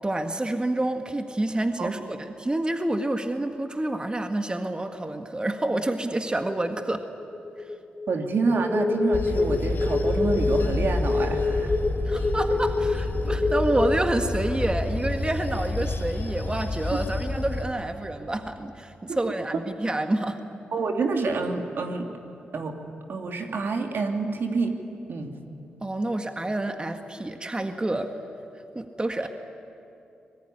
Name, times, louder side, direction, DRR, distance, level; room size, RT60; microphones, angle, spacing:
voice 1, 0.0-7.0 12.1-20.4 25.8-28.1 28.7-29.3, right 1 dB, 25° right, 6 dB, 1.7 m, -28 dB
sound 1, 6.4-14.0, left 3 dB, 20° left, 3.7 m, -27 dB
voice 2, 8.1-11.8 12.5-12.6 16.9-17.0 19.1-19.2 20.7-22.1 22.5-22.8 23.1-24.8 25.1-25.4, right 4 dB, 65° right, 4 dB, 2.6 m, -27 dB
Bell / Train, 9.1-17.7, left 2 dB, 55° left, 2.0 m, -29 dB
23.5 x 20.5 x 9.9 m, 2.7 s
supercardioid pair, 40°, 4 cm